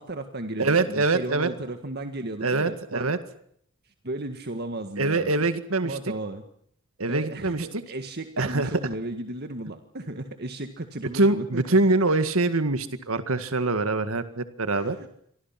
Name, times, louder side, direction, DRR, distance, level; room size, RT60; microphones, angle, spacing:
voice 1, 0.0-3.1 4.0-5.3 5.8-6.4 7.1-11.6 14.7-15.1, right 2 dB, 50° right, 7 dB, 1.8 m, -34 dB
voice 2, 0.6-1.5 2.4-3.2 5.0-6.0 7.0-7.7 8.4-8.7 11.1-15.0, right 2 dB, 85° right, 10 dB, 1.9 m, -24 dB
28.0 x 24.0 x 6.0 m, 0.66 s
head